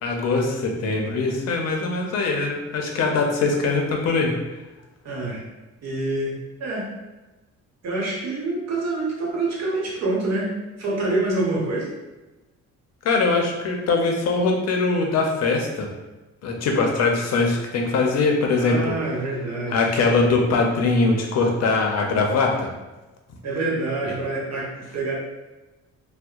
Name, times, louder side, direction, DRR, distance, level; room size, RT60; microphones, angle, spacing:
voice 1, 0.0-4.3 13.0-15.9 16.4-18.9 19.7-22.7 24.0-24.1, left 3 dB, 60° left, 1 dB, 0.6 m, -22 dB
voice 2, 5.0-5.4 5.8-6.9 7.8-10.5 10.8-11.9 18.6-19.8 23.4-25.2, right 2 dB, 60° right, -3 dB, 0.9 m, -26 dB
2.7 x 2.0 x 2.3 m, 1.1 s
cardioid pair, 90°, 30 cm